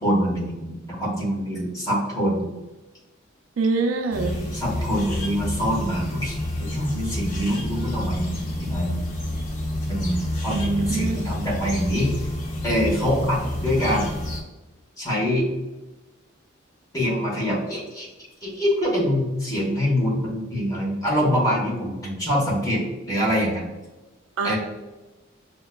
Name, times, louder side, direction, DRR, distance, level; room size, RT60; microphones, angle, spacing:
voice 1, 0.0-2.5 4.5-9.1 9.9-12.1 12.6-14.1 15.0-15.5 16.9-18.1 18.4-22.8 23.1-23.7 24.4-24.6, equal, 15° left, -4 dB, 1.1 m, -24 dB
voice 2, 3.6-4.4 10.9-11.2 24.4-24.6, right 4 dB, 70° right, 5 dB, 0.4 m, -24 dB
sound 1, 4.1-14.4, left 1 dB, 40° left, 0.7 m, -29 dB
5.5 x 2.2 x 2.2 m, 1.1 s
head